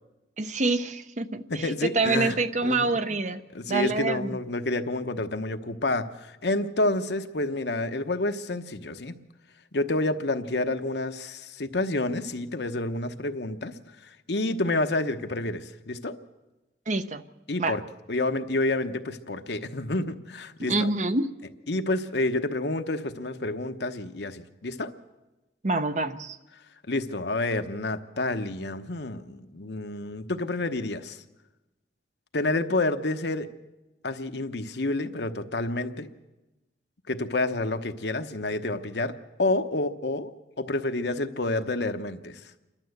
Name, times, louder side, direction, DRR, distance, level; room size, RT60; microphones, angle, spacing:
voice 1, 0.4-3.4 3.7-4.3 16.9-17.2 17.6-17.8 20.7-21.3 25.6-26.4, right 3 dB, 40° right, 10 dB, 0.8 m, -26 dB
voice 2, 1.5-2.4 2.6-3.0 3.5-9.1 9.7-13.7 14.3-16.1 17.5-17.8 18.1-20.9 21.7-24.9 26.9-31.2 32.3-33.5 34.0-36.1 37.1-40.3 40.6-42.4, left 2 dB, 70° left, 8 dB, 1.0 m, -29 dB
28.0 x 12.0 x 8.0 m, 1.1 s
head